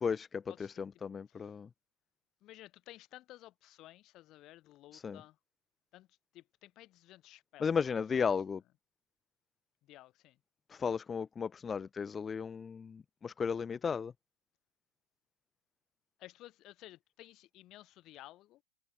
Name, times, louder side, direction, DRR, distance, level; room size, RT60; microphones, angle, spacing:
voice 1, 0.0-1.7 4.9-5.2 7.6-8.6 10.7-14.1, left 6 dB, 20° left, 0.3 m, -35 dB
voice 2, 2.4-5.4 5.9-7.7 8.1-8.2 9.8-10.4 16.2-18.6, left 16 dB, 35° left, 3.2 m, -55 dB
open air
figure-of-eight pair, 90°, 0 cm